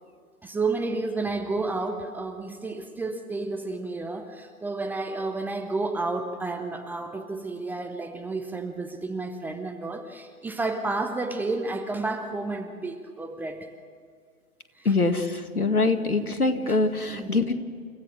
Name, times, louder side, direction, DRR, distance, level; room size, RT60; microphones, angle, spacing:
voice 1, 0.4-13.7 14.8-14.9 17.1-17.4, right 3 dB, 5° right, 5 dB, 0.6 m, -31 dB
voice 2, 14.8-17.5, left 3 dB, 90° left, 8 dB, 2.2 m, -24 dB
30.0 x 16.0 x 6.5 m, 2.1 s
figure-of-eight pair, 120°, 43 cm